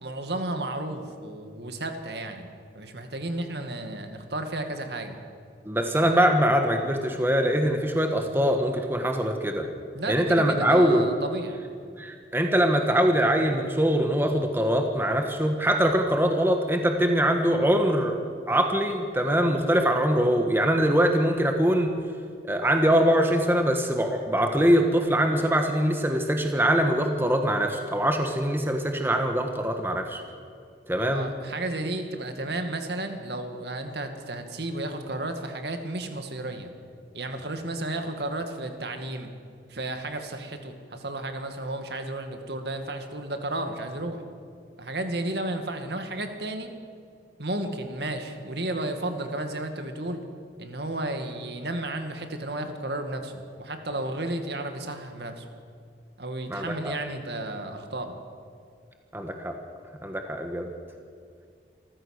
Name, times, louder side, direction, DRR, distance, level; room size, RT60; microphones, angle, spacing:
voice 1, 0.0-2.5 2.8-5.2 9.9-11.6 31.1-36.7 37.1-39.3 39.7-44.2 44.8-46.7 47.4-50.2 50.6-55.5 56.2-58.2, right 1 dB, 65° right, 6 dB, 2.1 m, -33 dB
voice 2, 5.6-9.7 10.1-11.1 12.0-18.2 18.5-21.9 22.5-30.2 30.9-31.3 56.5-56.9 59.1-59.5 60.0-60.7, equal, 10° right, 4 dB, 1.3 m, -23 dB
26.5 x 14.5 x 6.6 m, 2.3 s
head